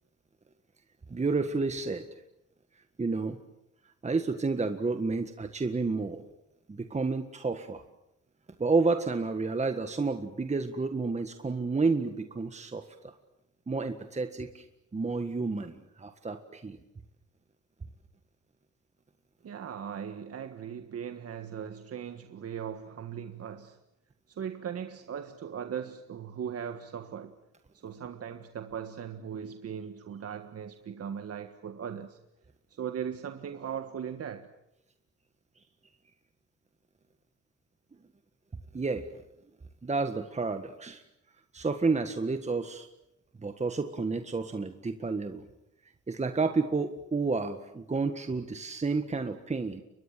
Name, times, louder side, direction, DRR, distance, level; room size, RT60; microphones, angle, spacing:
voice 1, 1.1-2.1 3.0-3.4 4.0-6.2 6.7-7.8 8.6-13.1 13.7-14.6 14.9-16.8 38.7-39.1 39.8-41.0 41.5-42.9 43.4-45.4 46.1-49.8, right 4 dB, 20° right, 1.6 m, -30 dB
voice 2, 19.4-23.8 24.3-27.3 27.7-32.2 32.8-34.5, right 8 dB, 55° right, 1.6 m, -38 dB
30.0 x 23.5 x 7.6 m
cardioid pair, 90°, 30 cm